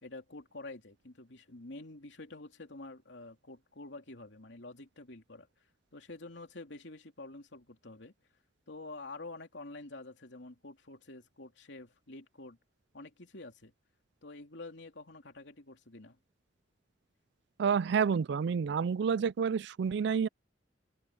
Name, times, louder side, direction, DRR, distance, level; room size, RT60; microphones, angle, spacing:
voice 1, 0.0-5.5 5.9-8.1 8.7-12.6 12.9-13.7 14.2-16.2, left 2 dB, 75° left, 2.9 m, -48 dB
voice 2, 17.6-20.3, right 6 dB, 65° right, 0.4 m, -29 dB
open air
head